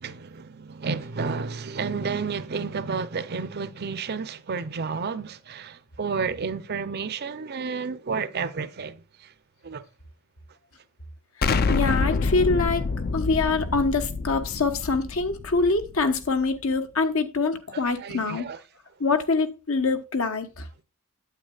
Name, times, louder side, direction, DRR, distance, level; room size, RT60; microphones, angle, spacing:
voice 1, 0.0-9.3 9.6-9.8 18.0-18.6, right 5 dB, 50° right, 0.6 m, -31 dB
Explosion, 11.4-16.2, left 4 dB, 45° left, 0.5 m, -27 dB
voice 2, 11.7-12.9 13.1-18.5 19.0-20.7, left 3 dB, 75° left, 1.2 m, -24 dB
8.9 x 8.4 x 2.4 m
head